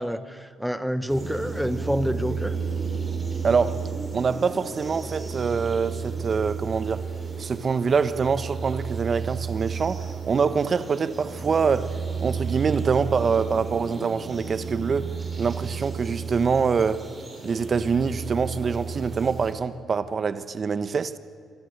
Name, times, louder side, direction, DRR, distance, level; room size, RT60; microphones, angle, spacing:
voice 1, 0.0-2.5, equal, ahead, 1.4 m, -28 dB
sound 1, 1.1-19.5, right 5 dB, 25° right, 6.5 m, -32 dB
voice 2, 3.4-3.8 4.1-7.0 7.4-15.1 15.4-17.0 17.4-21.1, right 5 dB, 45° right, 1.2 m, -25 dB
27.0 x 23.5 x 6.8 m
cardioid pair, 90°, 0 cm